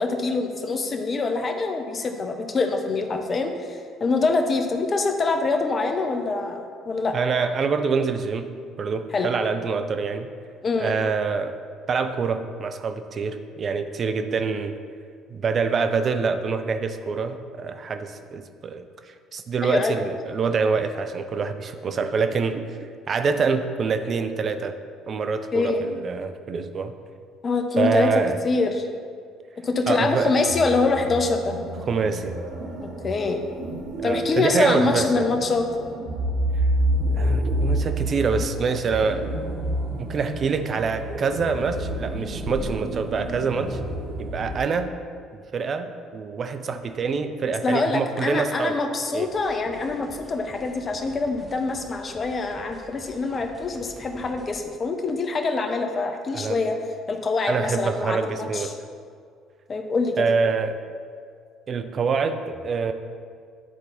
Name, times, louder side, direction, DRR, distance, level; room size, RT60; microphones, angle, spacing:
voice 1, 0.0-7.2 9.1-9.3 10.6-11.0 19.6-20.0 25.5-25.9 27.4-28.1 28.4-28.9 29.6-31.6 32.8-33.4 34.0-35.7 47.6-56.8 57.1-58.7 59.7-60.3, left 3 dB, 40° left, 5 dB, 0.8 m, -25 dB
voice 2, 7.1-8.5 8.8-10.3 10.8-11.5 11.9-14.8 15.3-22.8 23.1-24.8 25.1-26.9 27.8-28.4 29.9-30.3 31.9-32.4 34.0-35.3 37.2-39.3 40.0-43.8 44.2-44.9 45.5-48.8 49.1-49.3 56.3-56.6 57.5-58.7 60.2-60.8 61.7-62.9, right 5 dB, 45° right, 8 dB, 0.5 m, -25 dB
sound 1, 30.5-44.6, right 1 dB, 65° right, 1.0 m, -29 dB
sound 2, 49.3-54.5, equal, 5° right, 1.5 m, -47 dB
9.9 x 4.0 x 4.1 m, 2.2 s
hypercardioid pair, 55°, 0 cm